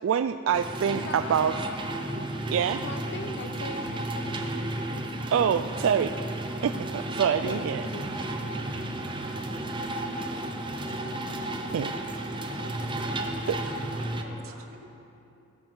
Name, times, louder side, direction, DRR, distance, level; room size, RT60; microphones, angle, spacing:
voice 1, 0.0-1.5 2.5-2.8 5.3-6.1 6.6-7.9 11.7-11.9 13.5-13.6, right 8 dB, 75° right, 10 dB, 0.3 m, -25 dB
sound 1, 0.5-14.2, right 1 dB, 25° right, 0.8 m, -33 dB
voice 2, 0.9-1.9 2.8-4.6 7.4-8.4 9.3-9.7, left 3 dB, 55° left, 9 dB, 0.6 m, -41 dB
voice 3, 12.4-13.3 13.9-14.8, equal, 55° right, -6 dB, 3.1 m, -50 dB
17.0 x 7.1 x 6.1 m, 2.8 s
head